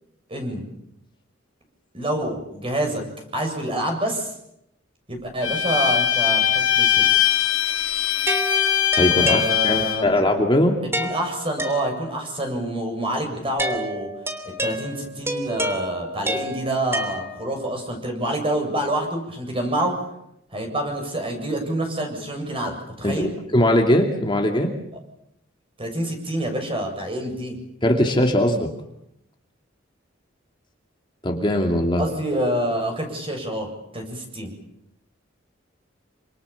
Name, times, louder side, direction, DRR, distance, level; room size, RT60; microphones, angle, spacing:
voice 1, 0.3-0.6 1.9-3.0 3.3-4.3 5.1-7.1 9.2-10.1 10.8-14.1 14.6-19.9 20.5-23.3 25.8-27.6 32.0-34.5, right 1 dB, 30° right, 3 dB, 7.5 m, -27 dB
Bowed string instrument, 5.4-10.1, left 9 dB, 90° left, 2.4 m, -21 dB
sound 1, 8.3-10.0 10.9-12.3 13.6-17.7, right 1 dB, 15° right, 3.1 m, -30 dB
voice 2, 9.0-10.8 23.0-24.7 27.8-28.7 31.2-32.0, left 1 dB, 25° left, 2 dB, 2.6 m, -20 dB
28.0 x 27.0 x 7.2 m, 0.79 s
head